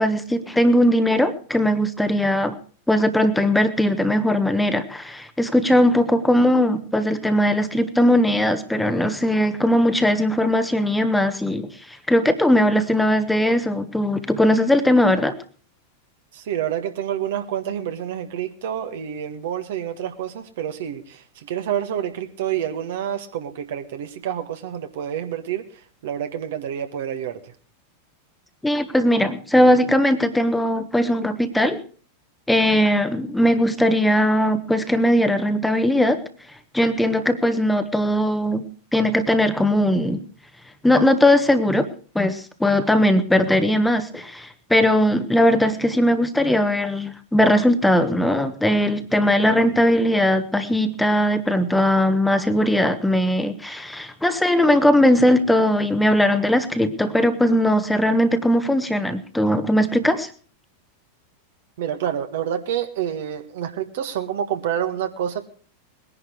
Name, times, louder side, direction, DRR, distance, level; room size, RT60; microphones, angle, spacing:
voice 1, 0.0-2.6 2.9-15.3 28.6-31.8 32.5-36.2 36.7-38.7 38.9-40.2 40.8-41.9 42.1-60.3, left 1 dB, 5° left, 9 dB, 1.2 m, -19 dB
voice 2, 16.3-25.6 26.0-27.5 61.8-65.4, right 9 dB, 55° right, 7 dB, 1.7 m, -28 dB
20.5 x 11.0 x 4.7 m, 0.42 s
figure-of-eight pair, 90°, 0 cm